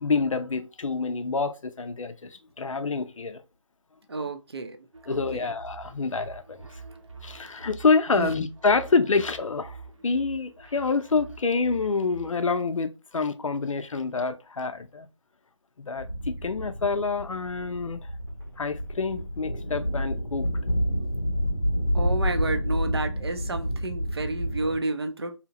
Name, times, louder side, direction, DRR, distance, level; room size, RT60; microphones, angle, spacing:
voice 1, 0.0-3.4 5.1-6.6 7.2-9.8 10.0-15.1 15.8-18.0 18.6-20.5, left 4 dB, 85° left, 0.5 m, -27 dB
voice 2, 4.1-4.8 5.1-5.5 8.1-8.3 21.9-25.3, right 2 dB, 50° right, 0.5 m, -31 dB
sound 1, 4.9-12.3, right 4 dB, 75° right, 0.8 m, -45 dB
sound 2, 16.0-24.8, equal, 40° left, 0.6 m, -29 dB
2.8 x 2.0 x 2.8 m
figure-of-eight pair, 175°, 16 cm